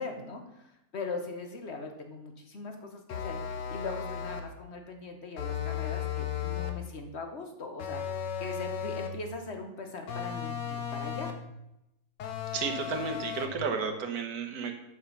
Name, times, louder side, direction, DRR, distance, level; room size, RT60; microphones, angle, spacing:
voice 1, 0.0-11.3, left 3 dB, 45° left, 5 dB, 1.2 m, -40 dB
sound 1, 3.1-4.6 5.4-6.9 7.8-9.3 10.1-11.5 12.2-13.7, left 8 dB, 85° left, 1.6 m, -35 dB
voice 2, 12.5-14.8, right 5 dB, 65° right, 5 dB, 1.6 m, -32 dB
8.6 x 5.4 x 5.5 m, 0.86 s
omnidirectional pair, 1.8 m